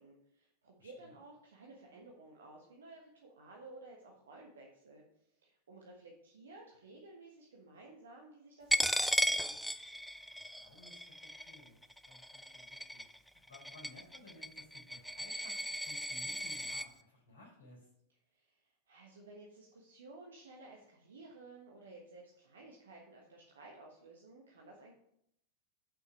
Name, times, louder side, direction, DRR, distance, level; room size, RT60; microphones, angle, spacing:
voice 1, 0.0-5.0 5.3-9.6 18.3-24.9, right 2 dB, 65° right, -1 dB, 1.3 m, -55 dB
voice 2, 0.8-1.2 10.3-11.2 11.4-11.8 12.0-17.9, left 2 dB, 70° left, -2 dB, 4.1 m, -58 dB
Coin (dropping), 8.7-16.9, equal, ahead, 0.4 m, -36 dB
7.6 x 5.9 x 5.8 m, 0.76 s
figure-of-eight pair, 90°, 0 cm